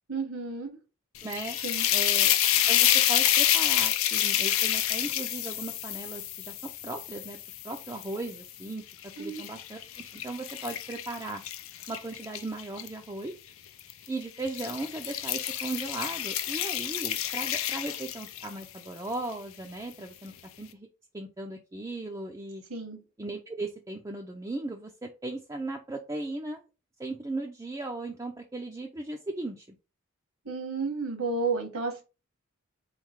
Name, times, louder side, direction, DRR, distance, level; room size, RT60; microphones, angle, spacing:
voice 1, 0.1-0.8 1.6-1.8 9.2-9.4 22.7-23.0 30.4-32.0, right 4 dB, 75° right, 4 dB, 1.3 m, -32 dB
sound 1, 1.2-8.4 8.9-12.9 13.8-14.1 14.4-18.6, left 12 dB, 70° left, 0.5 m, -28 dB
voice 2, 1.2-1.6 1.9-2.3 2.7-6.5 6.8-7.4 7.6-11.4 11.9-13.3 14.1-20.9 21.1-22.6 23.2-26.6 27.0-29.8, right 2 dB, 15° right, 1 dB, 0.4 m, -37 dB
3.9 x 3.2 x 3.6 m, 0.30 s
head